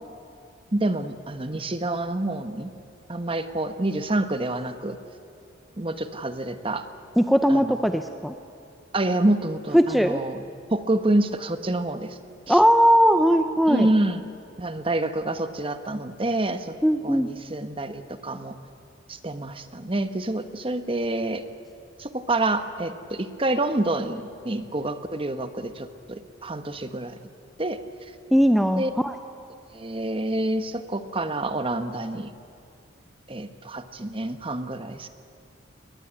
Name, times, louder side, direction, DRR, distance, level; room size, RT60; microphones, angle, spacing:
voice 1, 0.7-2.7 3.1-5.0 5.8-6.9 7.5-7.8 8.9-10.4 10.7-12.2 12.5-12.6 13.7-14.2 14.6-16.8 17.0-18.5 19.1-21.4 22.0-27.2 27.6-27.8 28.8-28.9 29.7-32.3 33.3-35.1, right 2 dB, 30° right, 10 dB, 1.1 m, -27 dB
voice 2, 7.2-8.3 9.7-10.2 12.5-13.9 16.8-17.3 28.3-29.2, equal, ahead, 7 dB, 0.6 m, -19 dB
22.0 x 19.0 x 9.8 m, 2.5 s
head